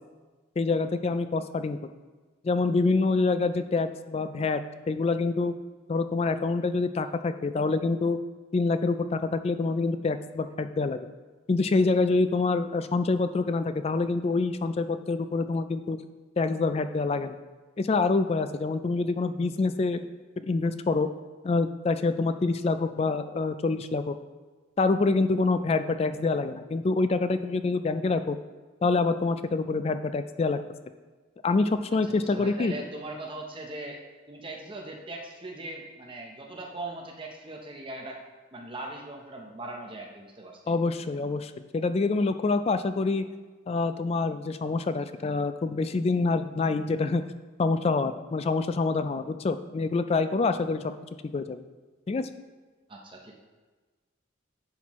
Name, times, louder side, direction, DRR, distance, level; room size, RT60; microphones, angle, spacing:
voice 1, 0.6-1.8 2.4-4.6 4.9-5.5 5.9-8.2 8.5-11.1 11.5-16.0 16.4-17.4 17.8-20.1 20.4-21.1 21.4-24.1 24.8-28.4 28.8-30.6 31.4-32.7 40.7-43.2 43.7-47.2 47.6-50.9 51.3-51.6 52.1-52.3, left 3 dB, 30° left, 11 dB, 0.3 m, -26 dB
voice 2, 32.1-34.0 34.3-38.2 38.5-40.6 52.9-53.3, right 2 dB, 25° right, 0 dB, 0.8 m, -40 dB
10.5 x 5.7 x 3.1 m, 1.3 s
head